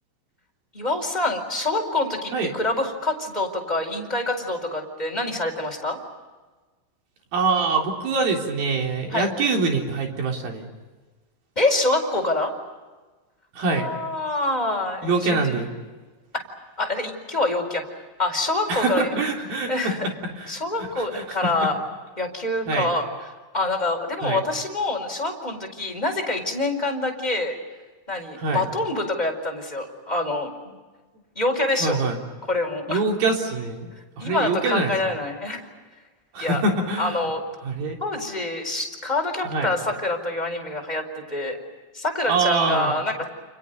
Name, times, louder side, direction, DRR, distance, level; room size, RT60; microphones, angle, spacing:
voice 1, 0.7-6.0 9.1-9.3 11.6-12.5 13.7-15.6 16.3-16.4 16.8-19.1 19.7-20.1 20.5-21.8 22.2-23.1 23.5-27.5 28.1-30.8 31.3-32.0 32.5-33.0 34.2-35.7 36.4-36.6 37.0-37.4 38.0-41.6 41.9-43.3, left 2 dB, 10° left, 1 dB, 4.0 m, -26 dB
voice 2, 7.3-10.7 13.5-13.9 15.0-15.7 18.7-19.9 20.3-21.5 22.7-22.9 24.2-24.4 28.4-28.6 31.8-32.2 32.9-35.2 36.3-37.2 37.6-38.0 39.4-39.7 42.3-43.0, right 3 dB, 50° right, 1 dB, 5.0 m, -25 dB
30.0 x 29.5 x 5.4 m, 1.3 s
omnidirectional pair, 5.9 m